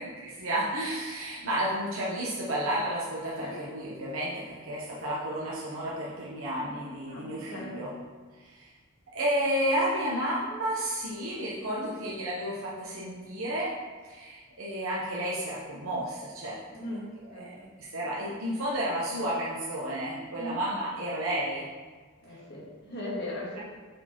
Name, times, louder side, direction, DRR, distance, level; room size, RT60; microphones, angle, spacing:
voice 1, 0.0-7.9 8.4-8.7 9.1-13.7 14.0-16.6 17.4-17.5 17.9-21.7, right 1 dB, 70° right, -6 dB, 1.1 m, -31 dB
voice 2, 7.1-7.7 11.7-11.9 16.7-17.7 20.3-20.6 22.2-23.6, left 1 dB, 50° left, -5 dB, 2.0 m, -39 dB
6.5 x 4.7 x 4.5 m, 1.5 s
head